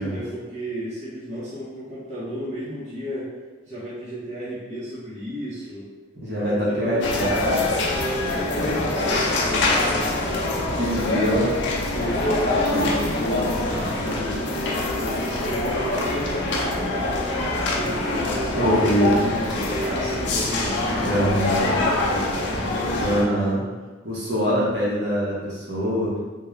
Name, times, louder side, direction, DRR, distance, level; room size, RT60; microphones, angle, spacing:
voice 1, 0.0-3.3 3.6-5.9 6.3-7.1 8.2-10.5 11.9-14.4 15.0-23.4, equal, 35° right, -10 dB, 0.8 m, -33 dB
voice 2, 6.2-8.8 10.8-11.6 12.7-13.0 18.5-19.1 21.0-21.8 23.0-23.6 24.0-26.2, equal, 60° right, -7 dB, 1.0 m, -24 dB
sound 1, 7.0-23.2, left 2 dB, 65° left, 0.5 m, -24 dB
3.7 x 2.3 x 3.1 m, 1.3 s
head